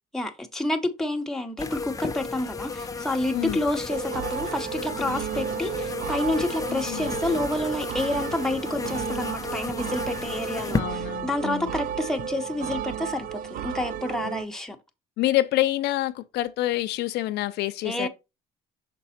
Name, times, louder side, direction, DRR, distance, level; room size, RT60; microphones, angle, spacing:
voice 1, 0.1-14.8 17.8-18.1, left 1 dB, 5° left, 1.0 m, -29 dB
sound 1, 1.6-10.8, left 4 dB, 20° left, 0.6 m, -33 dB
voice 2, 3.3-3.6 6.7-7.1 10.7-11.8 14.2-14.4 15.2-18.1, left 15 dB, 80° left, 0.6 m, -27 dB
sound 2, 3.9-14.4, right 9 dB, 60° right, 0.4 m, -33 dB
6.0 x 4.0 x 4.3 m
cardioid pair, 110°, 17 cm